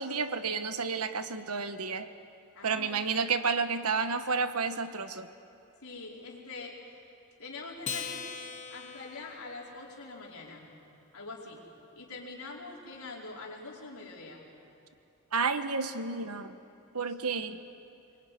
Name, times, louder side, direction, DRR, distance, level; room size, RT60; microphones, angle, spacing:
voice 1, 0.0-2.1 2.6-5.3 15.3-16.5 16.9-17.6, right 5 dB, 80° right, 10 dB, 1.3 m, -31 dB
voice 2, 2.5-3.0 5.8-6.8 7.4-8.3 8.7-10.7 11.1-11.7 11.9-14.4, left 3 dB, 70° left, -2 dB, 4.8 m, -44 dB
Acoustic guitar, 7.8-10.5, left 6 dB, 35° left, 1.4 m, -41 dB
25.5 x 23.0 x 9.4 m, 2.7 s
head